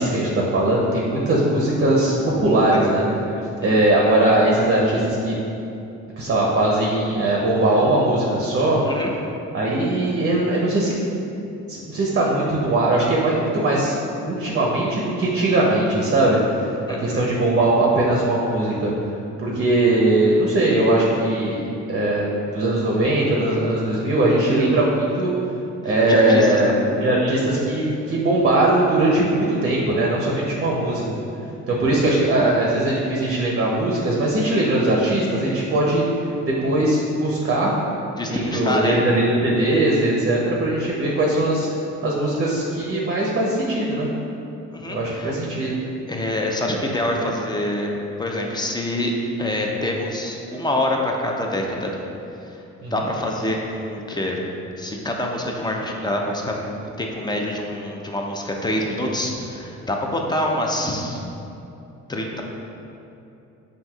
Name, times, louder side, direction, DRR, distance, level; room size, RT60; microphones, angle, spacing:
voice 1, 0.0-3.0 3.6-5.3 6.2-8.8 9.5-10.9 11.7-13.9 14.2-16.7 17.0-18.9 19.4-21.6 21.9-25.3 25.8-31.1 31.7-36.0 36.5-37.7 38.3-41.7 42.0-44.1 44.9-45.8 52.8-52.9, right 1 dB, 35° right, -3 dB, 0.6 m, -20 dB
voice 2, 16.9-17.3 25.8-26.6 38.2-39.0 44.7-45.4 46.1-47.9 48.2-49.1 49.4-52.1 52.4-52.6 52.9-54.4 54.8-61.2 62.1-62.4, left 1 dB, 15° left, 0 dB, 0.4 m, -26 dB
5.7 x 2.6 x 2.3 m, 2.8 s
cardioid pair, 90°, 30 cm